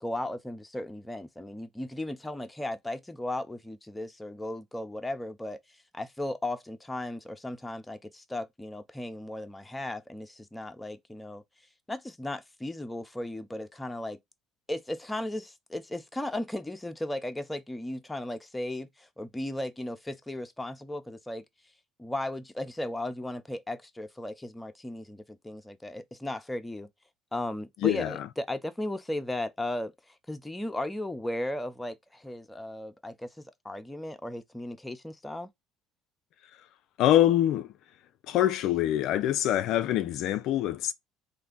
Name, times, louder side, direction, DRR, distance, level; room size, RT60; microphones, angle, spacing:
voice 1, 0.0-5.6 5.9-11.4 11.9-14.2 14.7-21.4 22.0-26.9 27.3-35.5, left 1 dB, 10° left, 0.7 m, -36 dB
voice 2, 27.8-28.3 37.0-37.7 38.3-40.9, left 12 dB, 65° left, 0.3 m, -25 dB
3.2 x 2.6 x 3.7 m
hypercardioid pair, 65°, 0 cm